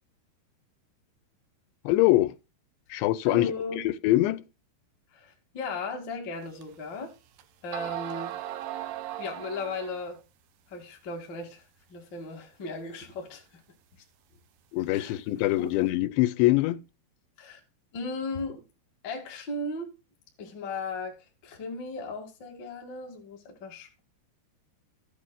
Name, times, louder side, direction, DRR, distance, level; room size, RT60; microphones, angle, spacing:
voice 1, 1.8-2.4 2.9-3.5 3.8-4.4 14.7-16.8, left 17 dB, 90° left, 2.9 m, -23 dB
voice 2, 3.3-3.8 5.1-7.1 7.6-8.4 9.2-10.2 10.7-11.6 11.9-13.4 14.9-15.1 15.5-15.8 17.4-17.6 17.9-18.6 19.0-19.9 20.4-21.2 21.4-24.0, left 3 dB, 40° left, 1.9 m, -36 dB
sound 1, 6.6-6.7 7.4-7.5 7.7-10.2, right 13 dB, 75° right, 2.7 m, -37 dB
14.5 x 8.6 x 2.3 m
omnidirectional pair, 5.0 m